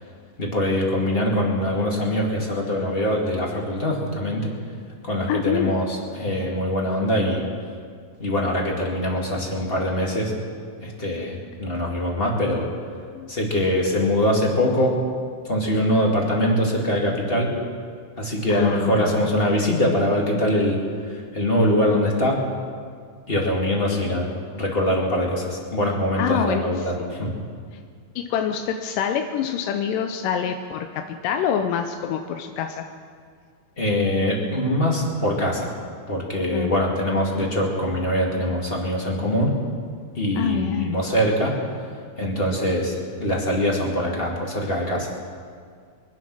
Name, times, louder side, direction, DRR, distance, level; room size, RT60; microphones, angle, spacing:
voice 1, 0.4-4.5 5.0-5.9 6.1-7.5 8.2-10.3 10.8-12.7 13.3-14.9 15.5-17.5 18.2-20.8 21.3-22.4 23.3-24.3 24.5-27.3 33.8-35.7 36.1-39.5 40.2-41.5 42.2-45.1, left 1 dB, 20° left, -1 dB, 1.8 m, -23 dB
voice 2, 5.3-5.8 13.1-13.3 18.5-19.3 23.9-24.0 26.2-26.7 27.0-27.2 28.2-32.9 36.5-36.7 40.4-41.0, left 8 dB, 90° left, 6 dB, 2.3 m, -26 dB
24.0 x 8.3 x 6.1 m, 2.1 s
omnidirectional pair, 3.8 m